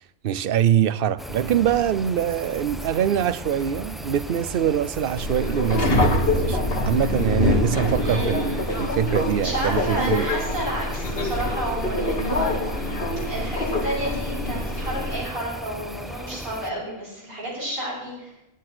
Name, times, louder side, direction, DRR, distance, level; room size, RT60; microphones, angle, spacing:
voice 1, 0.0-10.3, right 10 dB, 55° right, 0.7 m, -24 dB
sound 1, 1.2-16.7, equal, ahead, 0.7 m, -37 dB
Subway metro underground, 5.2-15.2, left 2 dB, 40° left, 2.4 m, -25 dB
voice 2, 8.0-8.7 9.4-12.7 13.3-18.3, right 1 dB, 85° right, 6.8 m, -31 dB
17.5 x 10.5 x 6.1 m
omnidirectional pair, 1.5 m